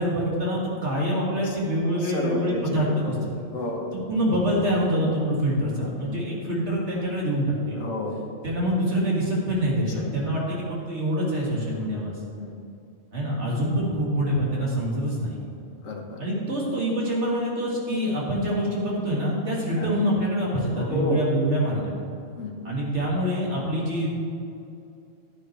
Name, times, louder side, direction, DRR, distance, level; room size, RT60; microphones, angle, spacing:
voice 1, 0.0-3.2 3.9-7.8 8.4-12.1 13.1-15.4 16.2-22.0 22.6-24.2, equal, 60° right, -4 dB, 2.6 m, -25 dB
voice 2, 2.0-3.2 3.5-3.9 6.0-6.2 7.7-8.2 9.8-10.0 10.5-10.6 12.4-12.6 15.8-16.2 19.8-19.9 20.7-21.2 22.4-22.7, left 1 dB, 80° left, 1 dB, 1.6 m, -31 dB
11.5 x 9.6 x 3.3 m, 2.6 s
omnidirectional pair, 1.3 m